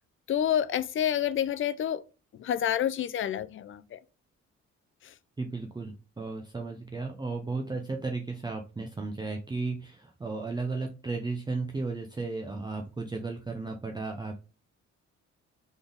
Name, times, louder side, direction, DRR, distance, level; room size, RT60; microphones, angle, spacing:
voice 1, 0.3-2.0 2.4-4.0, left 10 dB, 45° left, 0.4 m, -28 dB
voice 2, 5.4-14.4, right 3 dB, 15° right, 0.6 m, -34 dB
3.9 x 3.6 x 3.4 m
cardioid pair, 90°, 30 cm